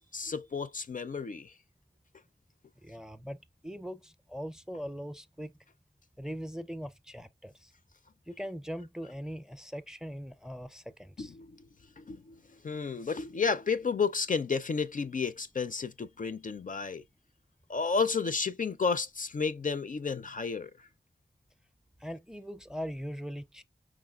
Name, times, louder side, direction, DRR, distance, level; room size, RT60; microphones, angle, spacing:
voice 1, 0.0-1.5 11.2-11.6 12.0-17.0 17.7-20.7, left 5 dB, 50° left, 0.4 m, -32 dB
voice 2, 2.8-3.4 3.6-5.5 6.2-7.7 8.3-11.3 22.0-23.6, equal, 5° right, 0.5 m, -40 dB
5.0 x 3.6 x 2.3 m
wide cardioid pair, 45°, 17 cm